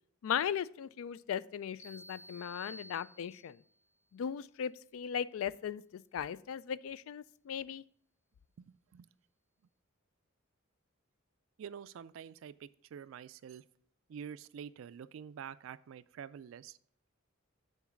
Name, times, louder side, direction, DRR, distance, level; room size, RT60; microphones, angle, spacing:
voice 1, 0.2-3.6 4.1-7.8, left 8 dB, 75° left, 18 dB, 0.3 m, -37 dB
sound 1, 1.8-3.7, right 1 dB, 60° left, 1.5 m, -52 dB
voice 2, 8.6-9.1 11.6-13.6 14.1-16.8, right 8 dB, 70° right, 16 dB, 0.3 m, -47 dB
7.2 x 4.0 x 5.7 m, 0.63 s
head